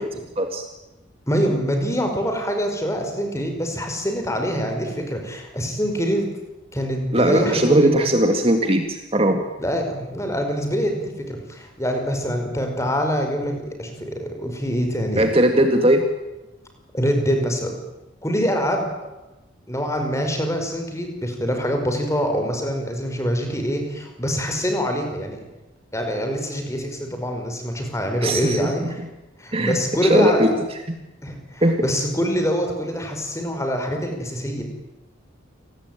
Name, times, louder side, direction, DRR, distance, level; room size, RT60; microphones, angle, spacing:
voice 1, 0.4-0.7 7.1-9.4 15.2-16.1 28.2-29.1 29.5-29.8 30.0-30.6 30.9-31.0 31.6-31.8, right 1 dB, 30° right, 6 dB, 2.0 m, -19 dB
voice 2, 1.3-6.3 6.7-8.1 9.6-15.3 16.9-17.7 18.2-18.9 19.7-25.4 25.9-29.0 29.4-30.5 31.2-34.6, equal, 15° left, 4 dB, 5.3 m, -25 dB
29.0 x 19.5 x 9.3 m, 0.99 s
head